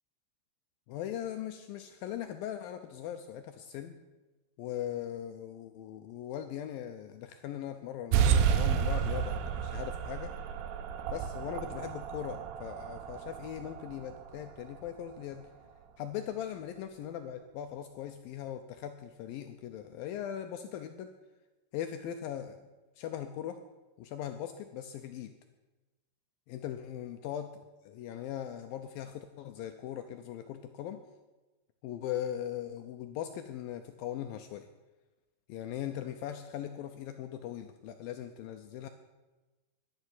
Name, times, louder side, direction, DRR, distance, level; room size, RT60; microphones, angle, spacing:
voice 1, 0.9-3.9 4.6-10.3 11.1-15.4 16.0-21.1 21.7-22.6 23.0-23.6 24.0-25.3 26.5-27.5 27.9-31.0 31.8-34.7 35.5-38.9, left 10 dB, 85° left, 6 dB, 2.0 m, -40 dB
sound 1, 8.1-15.2, right 8 dB, 80° right, 2.8 m, -31 dB
12.0 x 10.5 x 7.7 m, 1.1 s
omnidirectional pair, 5.0 m